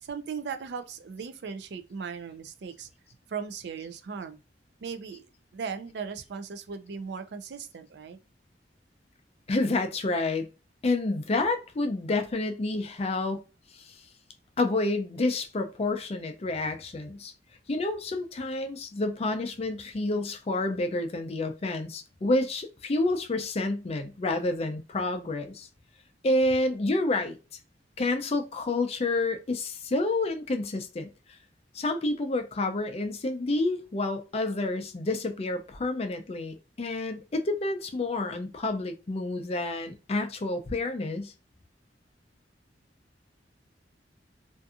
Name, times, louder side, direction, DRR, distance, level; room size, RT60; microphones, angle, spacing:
voice 1, 0.0-2.9 3.3-4.4 4.8-5.3 5.5-8.2, right 6 dB, 65° right, 0.4 m, -37 dB
voice 2, 9.5-10.5 10.8-13.4 13.7-13.9 14.6-17.3 17.7-25.7 26.2-27.4 28.0-31.1 31.7-41.3, left 2 dB, 35° left, 0.4 m, -29 dB
2.6 x 2.5 x 2.4 m
head